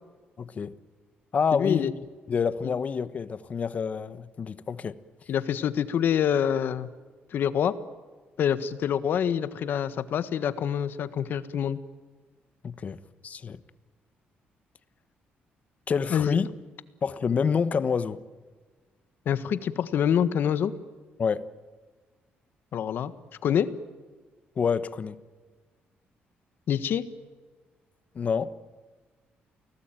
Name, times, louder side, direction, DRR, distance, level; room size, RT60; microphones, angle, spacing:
voice 1, 0.4-0.8 1.3-1.9 2.3-5.0 12.6-13.6 15.9-16.5 17.0-18.2 21.2-21.5 24.6-25.2 28.1-28.5, left 6 dB, 40° left, 1.1 m, -28 dB
voice 2, 1.5-1.9 2.6-2.7 5.3-6.9 7.3-7.8 8.4-11.8 16.1-16.4 19.2-20.7 22.7-23.1 23.4-23.7 26.7-27.0, left 9 dB, 65° left, 1.5 m, -26 dB
29.0 x 19.0 x 9.1 m
cardioid pair, 125°, 4 cm